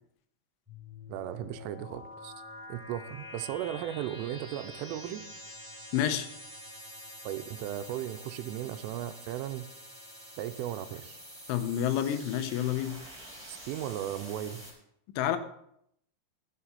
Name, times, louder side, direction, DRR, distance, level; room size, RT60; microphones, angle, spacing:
sound 1, 0.7-14.7, left 1 dB, ahead, 4.5 m, -47 dB
voice 1, 1.1-2.3 2.7-5.2 7.2-9.7 10.4-11.2 13.7-14.6, right 12 dB, 90° right, 10 dB, 3.2 m, -36 dB
voice 2, 5.9-6.3 11.5-13.0 15.2-15.4, left 10 dB, 80° left, 9 dB, 3.2 m, -29 dB
14.0 x 6.8 x 4.3 m, 0.73 s
omnidirectional pair, 5.6 m